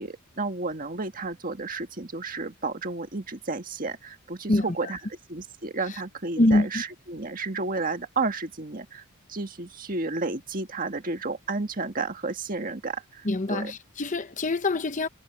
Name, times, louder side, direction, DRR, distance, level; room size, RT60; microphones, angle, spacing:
voice 1, 0.0-5.0 5.3-9.0 9.3-13.7, right 3 dB, 40° right, 1.7 m, -32 dB
voice 2, 4.5-4.9 6.4-6.8 13.2-15.1, left 2 dB, 35° left, 0.9 m, -24 dB
head